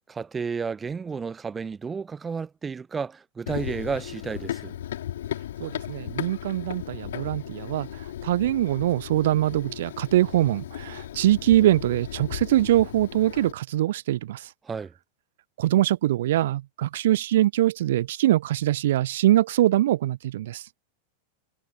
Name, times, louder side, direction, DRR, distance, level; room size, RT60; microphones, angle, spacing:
voice 1, 0.1-4.8 14.6-14.9, right 5 dB, 15° right, 0.7 m, -32 dB
Run, 3.5-13.5, left 11 dB, 60° left, 4.1 m, -36 dB
voice 2, 5.6-14.5 15.6-20.7, right 14 dB, 55° right, 0.4 m, -23 dB
figure-of-eight pair, 90°, 0 cm